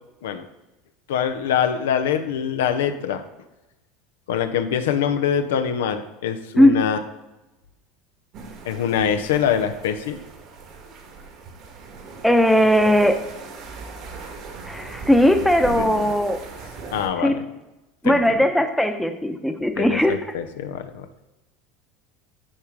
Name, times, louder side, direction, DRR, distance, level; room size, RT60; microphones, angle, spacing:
voice 1, 1.1-3.2 4.3-7.0 8.7-10.2 15.8-16.1 16.9-17.4 18.0-18.4 19.8-21.1, left 8 dB, 90° left, 8 dB, 0.7 m, -24 dB
sound 1, 8.3-17.1, right 4 dB, 55° right, 1.6 m, -38 dB
voice 2, 12.2-13.1 14.6-16.4 17.2-17.4 18.0-20.2, equal, ahead, 6 dB, 0.8 m, -18 dB
9.9 x 3.7 x 4.8 m, 1.0 s
supercardioid pair, 105°, 0 cm